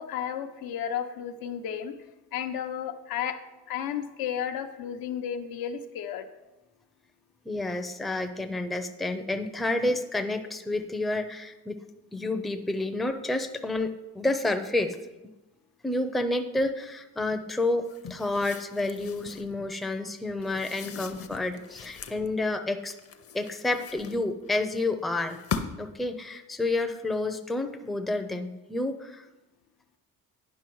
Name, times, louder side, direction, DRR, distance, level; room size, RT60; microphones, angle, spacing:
voice 1, 0.0-2.0 2.3-3.4 3.7-6.3, left 9 dB, 85° left, 7 dB, 0.8 m, -33 dB
voice 2, 7.5-11.8 12.1-15.0 15.8-23.0 23.3-25.4 25.8-29.3, left 2 dB, ahead, 6 dB, 0.5 m, -29 dB
sound 1, 17.8-19.5 20.4-22.3 22.9-24.5 25.2-26.0, left 6 dB, 40° left, 0.7 m, -39 dB
10.0 x 5.6 x 4.6 m, 1.0 s
cardioid pair, 125°, 35 cm